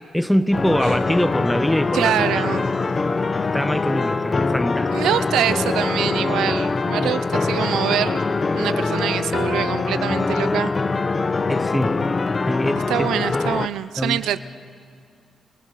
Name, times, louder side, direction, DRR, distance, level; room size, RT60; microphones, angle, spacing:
voice 1, 0.1-2.6 3.3-5.0 7.0-7.2 11.5-12.0 12.5-13.1 14.0-14.2, equal, 5° left, 12 dB, 1.2 m, -23 dB
sound 1, 0.5-13.7, left 3 dB, 40° left, 0.9 m, -23 dB
voice 2, 1.9-2.6 4.9-8.2 8.5-10.7 12.9-14.4, right 11 dB, 85° right, 14 dB, 0.6 m, -24 dB
29.0 x 28.5 x 6.7 m, 2.3 s
supercardioid pair, 60°, 0 cm